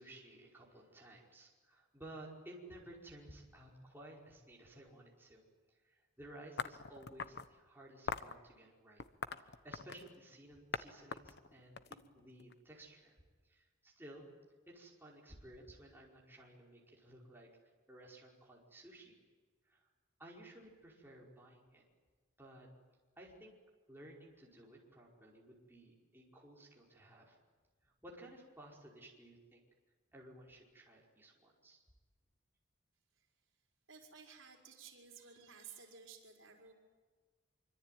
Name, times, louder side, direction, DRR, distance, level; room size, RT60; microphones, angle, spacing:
voice 1, 0.0-5.4 5.7-9.0 9.4-13.2 13.4-14.3 14.7-17.5 17.9-19.2 19.6-19.9 20.2-21.8 22.4-22.7 23.2-23.5 23.9-27.4 27.8-29.6 30.1-31.8, right 1 dB, 10° right, -2 dB, 5.1 m, -56 dB
sound 1, 6.6-7.5 8.1-8.3 9.0-10.1 10.7-10.8 11.1-12.5, left 5 dB, 55° left, 1.1 m, -42 dB
voice 2, 33.9-36.7, right 6 dB, 75° right, 1 dB, 5.1 m, -55 dB
25.5 x 25.0 x 9.3 m, 1.4 s
head